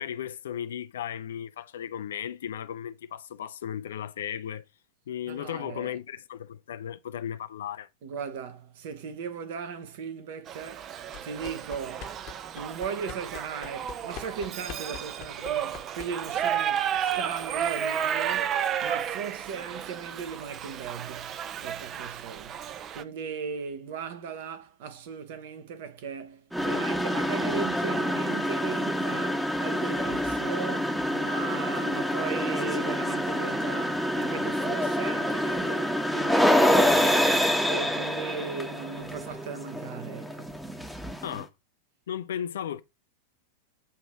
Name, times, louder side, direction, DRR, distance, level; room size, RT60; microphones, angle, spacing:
voice 1, 0.0-4.6 5.1-7.9 41.2-41.5 42.1-42.8, left 9 dB, 60° left, 0.6 m, -35 dB
voice 2, 5.3-6.0 8.0-10.9 11.2-12.2 12.5-22.6 22.9-40.6, right 6 dB, 50° right, 1.1 m, -37 dB
Shout / Livestock farm animals working animals, 10.5-23.0, right 9 dB, 30° right, 0.6 m, -32 dB
sound 1, 11.1-16.4, left 9 dB, 40° left, 1.1 m, -45 dB
sound 2, 26.5-41.4, equal, ahead, 1.0 m, -27 dB
8.2 x 3.1 x 4.9 m
figure-of-eight pair, 90°, 0 cm